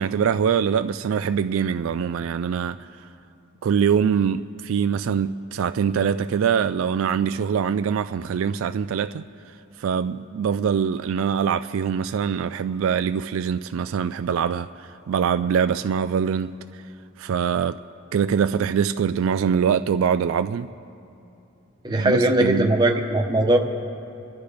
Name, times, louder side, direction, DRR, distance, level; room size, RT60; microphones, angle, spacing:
voice 1, 0.0-2.8 3.6-9.2 9.8-16.6 17.2-17.8 18.1-20.7 21.9-22.7, right 7 dB, 70° right, 0.3 m, -23 dB
voice 2, 21.8-23.6, right 1 dB, 20° right, 1.0 m, -19 dB
27.0 x 11.5 x 3.4 m
head